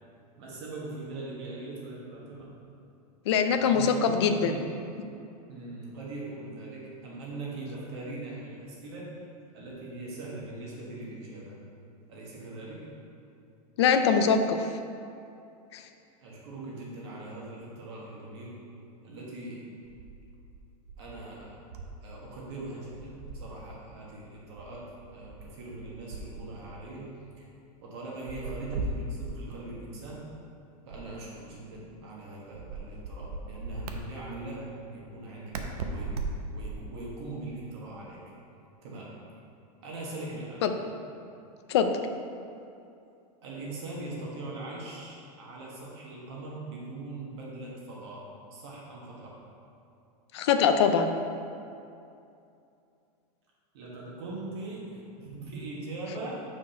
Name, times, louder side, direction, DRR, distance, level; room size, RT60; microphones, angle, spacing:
voice 1, 0.4-2.5 3.5-4.6 5.5-9.1 9.5-11.6 12.1-12.9 16.2-18.6 19.0-19.7 21.0-21.6 22.0-27.1 27.4-27.5 27.8-30.3 30.8-36.1 36.5-38.2 38.8-39.1 39.8-40.6 43.4-49.4 53.7-56.3, right 2 dB, 40° right, -4 dB, 1.4 m, -41 dB
voice 2, 3.3-4.5 13.8-14.7 15.7-15.8 40.6-40.7 41.7-41.9 50.3-51.1, left 6 dB, 45° left, 7 dB, 0.4 m, -23 dB
sound 1, 19.8-22.2 22.4-23.7 24.6-26.7 28.2-29.6 30.9-32.0 32.5-34.0 35.5-37.0, right 2 dB, 75° right, 0.8 m, -38 dB
6.0 x 4.8 x 5.7 m, 2.6 s
supercardioid pair, 180°, 20 cm